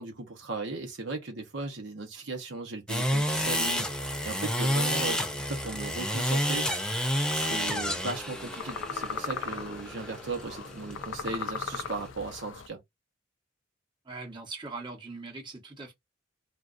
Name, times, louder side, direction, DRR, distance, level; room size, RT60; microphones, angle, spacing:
voice 1, 0.0-5.2 5.5-6.7 7.3-12.8, right 3 dB, 70° right, 0.9 m, -37 dB
sound 1, 2.9-12.1, equal, 5° left, 0.5 m, -30 dB
sound 2, 7.3-12.7, left 6 dB, 85° left, 0.4 m, -39 dB
voice 2, 14.0-15.9, right 3 dB, 25° right, 1.0 m, -41 dB
3.5 x 2.5 x 2.5 m
head